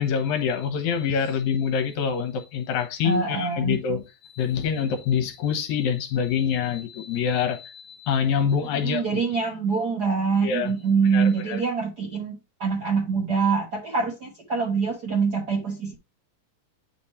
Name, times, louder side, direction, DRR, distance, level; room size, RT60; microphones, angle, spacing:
voice 1, 0.0-9.2 10.4-10.7 11.1-11.6, left 7 dB, 70° left, 2.3 m, -26 dB
voice 2, 3.0-3.8 8.8-16.0, right 5 dB, 70° right, 0.9 m, -25 dB
9.3 x 3.1 x 4.2 m
omnidirectional pair, 3.8 m